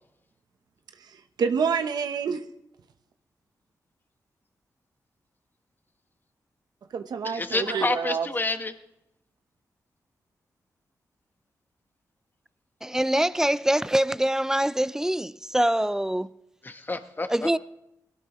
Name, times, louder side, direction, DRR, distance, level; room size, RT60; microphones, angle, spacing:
voice 1, 1.4-2.4 6.9-8.3, right 6 dB, 80° right, 0.9 m, -27 dB
voice 2, 7.2-8.7 16.6-17.5, left 2 dB, 30° left, 1.2 m, -29 dB
voice 3, 12.8-16.3 17.3-17.6, right 1 dB, 5° right, 0.5 m, -24 dB
20.5 x 17.0 x 3.1 m
cardioid pair, 75°, 7 cm